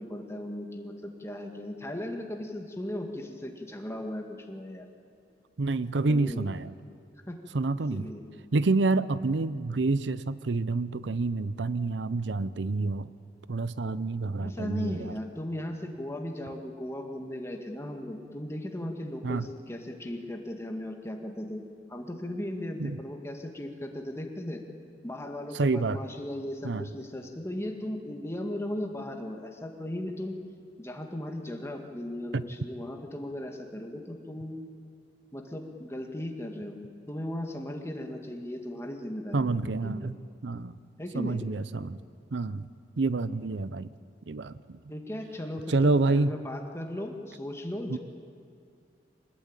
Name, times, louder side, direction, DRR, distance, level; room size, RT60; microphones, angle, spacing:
voice 1, 0.0-4.9 6.1-6.4 7.3-7.4 7.9-8.2 14.4-21.6 21.9-24.6 25.0-30.4 30.8-34.6 35.3-36.8 37.1-39.6 39.8-40.1 41.0-41.4 44.9-48.0, left 1 dB, 15° left, 3 dB, 2.0 m, -37 dB
voice 2, 5.6-6.7 7.5-8.1 8.5-13.1 13.5-15.1 19.2-19.5 22.8-23.0 25.5-26.0 26.6-26.9 32.3-32.4 39.3-40.2 40.4-40.8 41.1-42.0 42.3-42.7 43.0-43.9 44.3-44.8 45.7-46.3 47.9-48.0, right 3 dB, 85° right, 16 dB, 0.6 m, -28 dB
24.5 x 19.5 x 8.9 m, 2.3 s
head